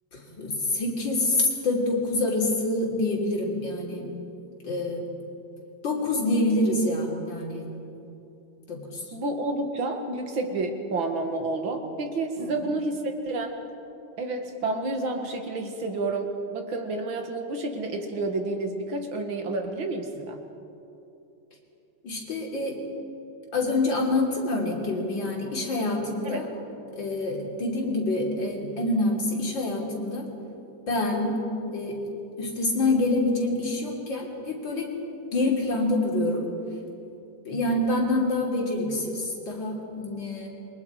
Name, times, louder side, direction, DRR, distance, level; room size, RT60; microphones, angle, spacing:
voice 1, 0.1-4.1 4.6-5.1 5.8-7.7 8.7-9.0 12.4-12.5 22.0-22.7 23.5-26.5 26.9-30.3 30.9-31.4 31.7-32.0 32.4-34.9 35.3-36.5 37.5-40.5, left 2 dB, 70° left, -2 dB, 4.0 m, -26 dB
voice 2, 9.1-13.6 14.2-20.4 26.2-26.5, right 2 dB, 75° right, 4 dB, 2.6 m, -30 dB
28.0 x 23.0 x 4.9 m, 2.8 s
omnidirectional pair, 2.2 m